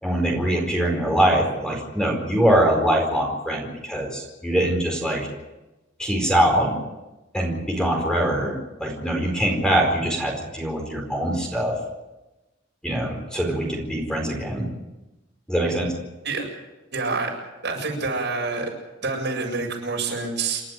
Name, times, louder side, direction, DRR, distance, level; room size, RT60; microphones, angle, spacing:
voice 1, 0.0-5.2 6.0-6.7 7.3-11.7 12.8-14.7 15.5-15.9, right 1 dB, 5° left, 1 dB, 4.6 m, -23 dB
voice 2, 16.9-17.3 17.6-18.7 19.0-20.6, right 3 dB, 65° right, 0 dB, 7.5 m, -27 dB
29.0 x 12.0 x 9.2 m, 1.0 s
head